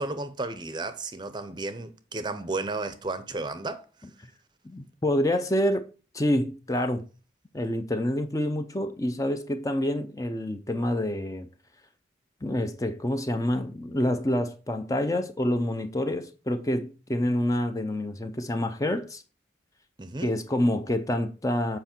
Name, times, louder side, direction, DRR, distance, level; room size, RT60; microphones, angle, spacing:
voice 1, 0.0-3.8 20.0-20.3, right 3 dB, 25° right, 0.6 m, -33 dB
voice 2, 4.6-5.8 6.1-7.1 7.5-11.5 12.4-19.2 20.2-21.8, left 1 dB, 20° left, 0.6 m, -27 dB
8.0 x 5.3 x 4.4 m
head